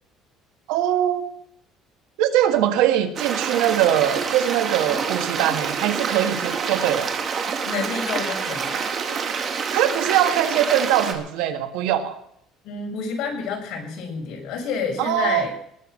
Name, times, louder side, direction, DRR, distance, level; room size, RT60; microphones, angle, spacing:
voice 1, 0.7-1.3 2.2-7.1 9.7-12.1 15.0-15.4, right 11 dB, 90° right, 7 dB, 1.7 m, -22 dB
Stream, 3.2-11.1, right 6 dB, 35° right, 2.1 m, -27 dB
voice 2, 7.6-8.9 12.6-15.5, left 5 dB, 60° left, 1 dB, 5.6 m, -29 dB
19.5 x 7.2 x 7.7 m, 0.72 s
cardioid pair, 145°, 0 cm